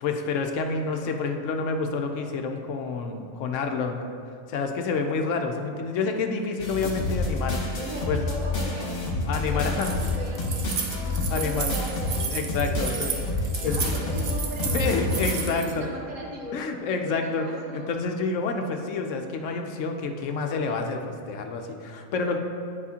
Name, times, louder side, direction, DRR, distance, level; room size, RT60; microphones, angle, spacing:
voice 1, 0.0-4.0 4.5-7.6 8.1-8.2 9.3-9.9 11.0-11.7 12.3-13.1 13.6-13.8 14.7-15.9 16.5-17.4 17.7-22.4, left 4 dB, 70° left, 4 dB, 0.9 m, -28 dB
sound 1, 6.6-15.7, left 2 dB, 50° left, 1.3 m, -29 dB
voice 2, 7.7-8.9 9.4-10.9 11.3-12.1 12.8-13.2 13.6-16.7 17.1-17.9, equal, 75° right, -2 dB, 1.4 m, -37 dB
Keys jangling, 9.7-15.7, right 6 dB, 55° right, 0.8 m, -33 dB
9.6 x 5.0 x 2.8 m, 2.4 s
omnidirectional pair, 1.4 m